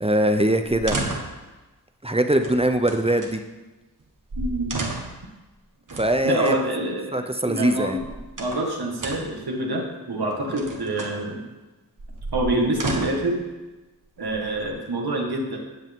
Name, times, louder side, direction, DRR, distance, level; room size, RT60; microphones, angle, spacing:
voice 1, 0.0-1.0 2.0-3.4 6.0-6.5 7.1-8.0, right 1 dB, 15° right, 7 dB, 0.7 m, -22 dB
sound 1, 0.6-1.4 2.4-3.3 4.0-4.1 4.3-5.3 5.9-6.6 7.7-8.7 9.0-9.4 10.3-11.2 12.0-13.3 14.2-14.9, right 2 dB, 55° right, 1.6 m, -32 dB
voice 2, 4.4-4.9 6.2-7.1 7.5-8.0 8.4-11.4 12.3-13.4 14.2-15.6, right 1 dB, 80° right, 0 dB, 2.0 m, -26 dB
15.5 x 8.1 x 3.7 m, 1.1 s
wide cardioid pair, 95°, 37 cm